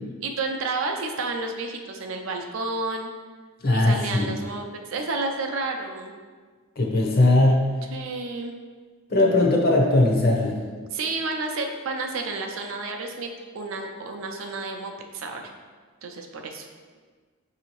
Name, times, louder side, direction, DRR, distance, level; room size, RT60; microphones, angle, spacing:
voice 1, 0.2-3.1 3.7-6.1 7.9-8.5 10.9-13.3 13.5-15.4 16.0-16.7, right 3 dB, 65° right, 3 dB, 0.4 m, -31 dB
voice 2, 3.6-4.3 6.8-7.7 9.1-10.6, left 2 dB, 45° left, -1 dB, 0.7 m, -19 dB
5.9 x 2.8 x 3.0 m, 1.5 s
head